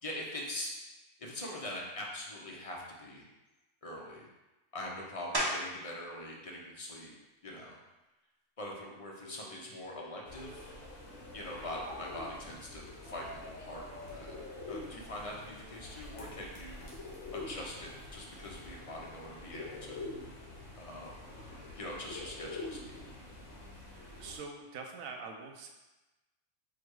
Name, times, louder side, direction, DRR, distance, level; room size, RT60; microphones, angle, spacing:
voice 1, 0.0-0.7 1.2-3.3 3.8-4.3 4.7-7.1 7.4-7.8 8.6-10.7 11.3-14.4 14.7-16.9 17.3-20.1 20.8-21.2 21.8-23.1, left 1 dB, 40° left, -2 dB, 0.5 m, -43 dB
sound 1, 5.3-5.9 6.5-10.9 11.4-16.6 16.9-22.5, equal, 25° right, 0.6 m, -44 dB
sound 2, 9.2-12.0 13.0-16.0, left 1 dB, 15° left, 1.4 m, -52 dB
sound 3, 10.2-24.4, left 2 dB, 65° left, 1.4 m, -46 dB
voice 2, 23.9-25.7, right 4 dB, 85° right, 3 dB, 1.0 m, -44 dB
4.7 x 2.2 x 4.6 m, 1.1 s
omnidirectional pair, 1.4 m